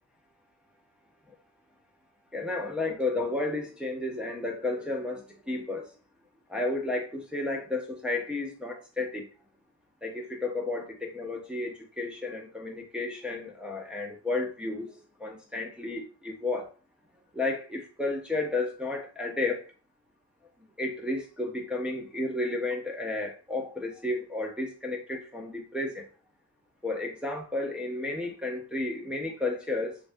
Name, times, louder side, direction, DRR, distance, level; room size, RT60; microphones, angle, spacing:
voice 1, 2.3-5.9 6.5-9.2 10.0-16.7 17.3-19.6 20.8-26.1 26.8-30.0, left 2 dB, ahead, -1 dB, 0.7 m, -32 dB
3.2 x 2.6 x 2.6 m, 0.36 s
hypercardioid pair, 55°, 40 cm